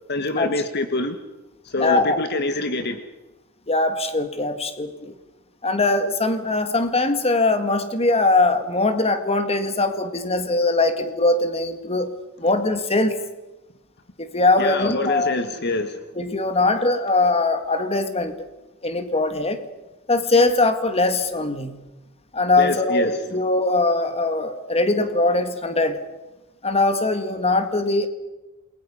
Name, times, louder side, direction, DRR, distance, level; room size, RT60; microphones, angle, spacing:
voice 1, 0.1-1.2 1.6-3.0 14.6-16.0 22.6-23.1, left 2 dB, 50° left, 8 dB, 1.5 m, -25 dB
voice 2, 1.8-2.2 3.7-5.1 5.6-12.1 12.4-13.2 14.2-15.4 16.2-18.5 18.8-19.6 20.1-21.8 22.3-26.0 26.6-28.1, left 2 dB, 30° left, 9 dB, 2.1 m, -21 dB
28.5 x 22.0 x 5.6 m, 1.1 s
head